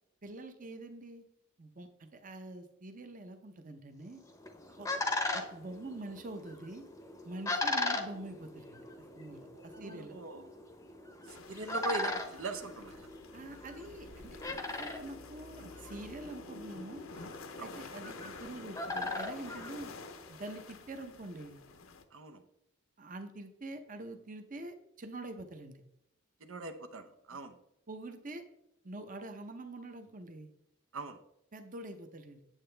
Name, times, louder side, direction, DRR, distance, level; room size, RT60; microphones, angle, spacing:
voice 1, 0.2-1.2 1.6-4.2 4.8-4.9 5.3-6.9 7.2-8.8 9.2-10.2 13.3-17.0 17.6-19.9 20.3-21.6 23.0-25.8 27.9-28.4 28.8-30.5 31.5-32.4, right 2 dB, 40° right, 7 dB, 0.8 m, -45 dB
sound 1, 4.2-20.4, left 2 dB, 15° left, 0.7 m, -39 dB
voice 2, 9.5-10.5 11.2-13.1 17.6-17.7 22.1-22.4 26.4-27.6 30.9-31.2, right 3 dB, 70° right, 6 dB, 0.7 m, -41 dB
sound 2, 11.3-22.0, left 4 dB, 70° left, 0.8 m, -50 dB
9.0 x 7.7 x 3.3 m, 0.80 s
head